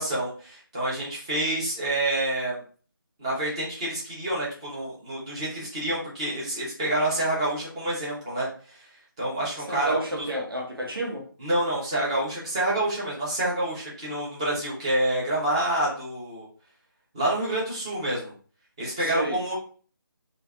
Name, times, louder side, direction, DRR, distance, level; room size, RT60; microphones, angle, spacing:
voice 1, 0.0-2.6 3.2-8.9 9.2-10.2 11.4-16.5 17.1-18.3 18.8-19.5, right 1 dB, 15° right, 0.9 m, -28 dB
voice 2, 9.7-11.3 19.0-19.4, right 1 dB, 75° right, 1.2 m, -30 dB
3.2 x 2.5 x 2.4 m
figure-of-eight pair, 160°, 12 cm